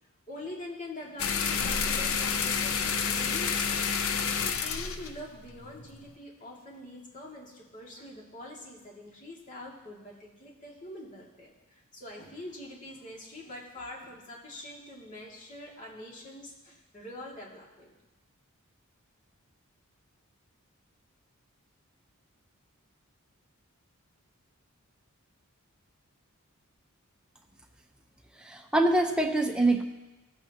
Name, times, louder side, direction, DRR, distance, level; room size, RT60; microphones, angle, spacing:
voice 1, 0.3-3.8 4.6-11.5 11.9-17.9, left 1 dB, 35° left, -3 dB, 2.6 m, -44 dB
sound 1, 1.2-6.1, left 6 dB, 65° left, 0.7 m, -29 dB
voice 2, 28.4-29.8, right 2 dB, 5° right, 2 dB, 1.0 m, -25 dB
18.5 x 8.5 x 3.0 m, 1.0 s
head